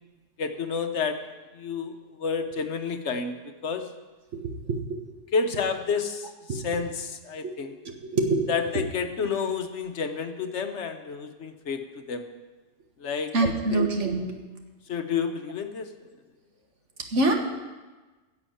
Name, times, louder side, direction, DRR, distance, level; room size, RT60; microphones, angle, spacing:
voice 1, 0.4-1.2 1.5-3.9 5.3-7.7 8.5-11.8 12.1-12.3 13.0-13.3 13.7-13.8 14.9-15.9, left 5 dB, 65° left, 7 dB, 1.2 m, -30 dB
voice 2, 8.1-8.4 13.3-14.4 17.1-17.3, right 2 dB, 65° right, 3 dB, 1.7 m, -24 dB
11.0 x 7.1 x 8.5 m, 1.2 s
omnidirectional pair, 1.3 m